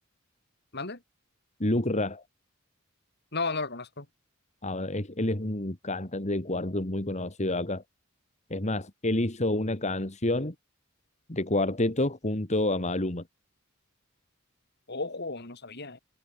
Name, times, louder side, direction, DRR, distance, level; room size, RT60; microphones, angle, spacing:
voice 1, 1.6-2.2 4.6-7.8 8.5-10.5 11.3-13.2, left 1 dB, 35° left, 2.3 m, -28 dB
voice 2, 3.3-4.1 14.9-16.0, left 3 dB, 55° left, 3.8 m, -34 dB
head